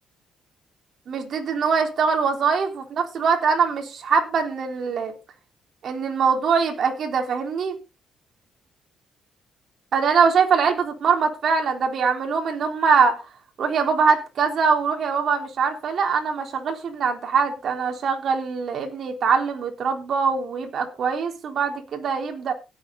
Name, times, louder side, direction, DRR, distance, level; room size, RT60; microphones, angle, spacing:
voice 1, 1.1-5.1 5.8-7.8 9.9-13.2 13.6-22.5, right 5 dB, 60° right, 3.7 m, -22 dB
17.5 x 8.5 x 3.9 m
cardioid pair, 90°, 0 cm